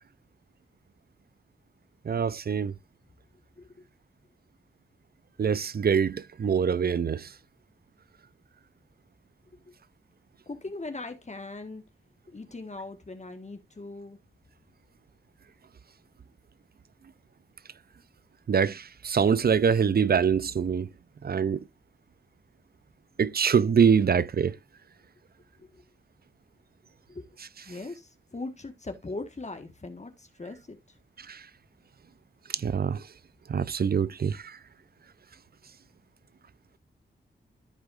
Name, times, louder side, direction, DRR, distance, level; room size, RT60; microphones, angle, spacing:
voice 1, 2.1-2.7 5.4-7.3 18.5-20.9 21.2-21.6 23.2-24.5 31.3-31.4 32.5-33.0 33.5-34.6, right 6 dB, 55° right, 0.6 m, -24 dB
voice 2, 10.4-11.8 12.3-14.2 25.6-25.8 27.1-27.2 27.6-31.0, left 2 dB, 35° left, 1.6 m, -40 dB
14.0 x 4.7 x 2.5 m
cardioid pair, 45°, 20 cm